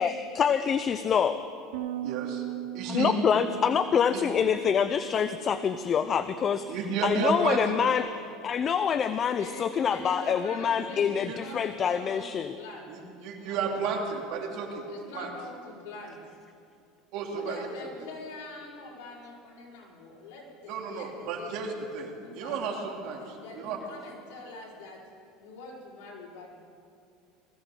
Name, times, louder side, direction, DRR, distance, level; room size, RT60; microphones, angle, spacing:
voice 1, 0.0-1.4 2.9-6.8 7.0-12.6, left 7 dB, 35° left, 11 dB, 0.5 m, -26 dB
Bass guitar, 1.7-8.0, right 12 dB, 90° right, 0.5 m, -40 dB
voice 2, 2.0-2.4 2.7-3.1 4.1-4.2 6.7-7.8 10.8-10.9 11.2-11.4 12.9-14.9 15.1-15.3 17.1-17.7 20.7-23.8, right 5 dB, 65° right, 1 dB, 2.6 m, -32 dB
voice 3, 9.3-12.9 13.2-13.8 14.9-16.2 17.3-21.7 22.2-22.9 23.2-25.0 25.4-26.5, left 2 dB, 75° left, -4 dB, 4.4 m, -44 dB
20.0 x 15.5 x 3.8 m, 2.5 s
supercardioid pair, 120°, 0 cm